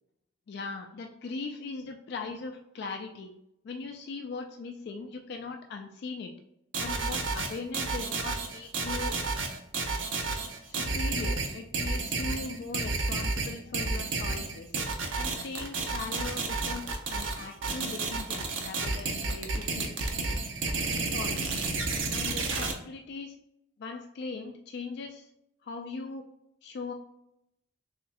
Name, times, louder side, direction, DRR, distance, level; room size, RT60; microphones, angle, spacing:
voice 1, 0.5-3.3 3.6-6.3 6.8-9.2 10.6-14.7 15.2-19.9 20.9-21.5 22.1-23.3 23.8-25.3 25.6-26.3 26.6-26.9, left 4 dB, 55° left, 4 dB, 0.3 m, -39 dB
sound 1, 6.7-22.7, right 3 dB, 75° right, 0.6 m, -31 dB
3.6 x 3.0 x 2.8 m, 0.81 s
head